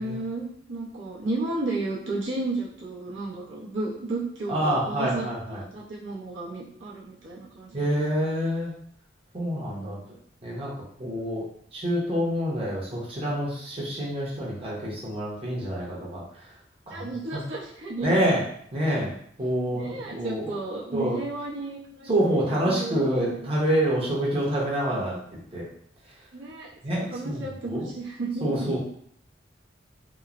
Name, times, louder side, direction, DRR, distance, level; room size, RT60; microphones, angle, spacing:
voice 1, 0.0-8.2 9.6-10.1 16.9-18.2 19.7-23.5 26.3-26.7 27.0-28.7, right 2 dB, 75° right, -6 dB, 0.7 m, -33 dB
voice 2, 4.5-5.6 7.7-8.7 9.3-10.0 10.4-10.7 11.0-11.4 11.7-16.2 16.9-17.4 18.0-18.4 18.7-19.1 19.4-20.5 20.9-21.2 22.1-25.2 25.5-25.6 26.8-27.9 28.4-28.8, equal, 30° right, -6 dB, 0.7 m, -27 dB
3.0 x 2.0 x 2.4 m, 0.64 s
head